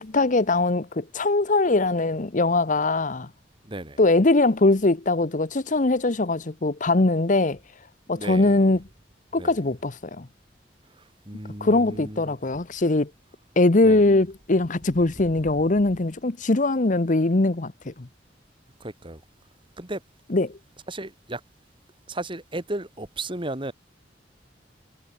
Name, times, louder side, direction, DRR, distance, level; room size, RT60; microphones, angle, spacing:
voice 1, 0.0-3.3 4.0-7.6 8.1-8.8 9.3-10.3 11.6-13.1 13.6-18.1 20.3-20.6, left 2 dB, 45° left, 1.0 m, -21 dB
voice 2, 3.6-4.0 8.1-8.7 9.4-9.5 11.3-12.4 13.8-14.1 18.8-19.2 19.8-20.0 20.9-21.4 22.1-23.7, right 2 dB, 30° right, 2.6 m, -34 dB
head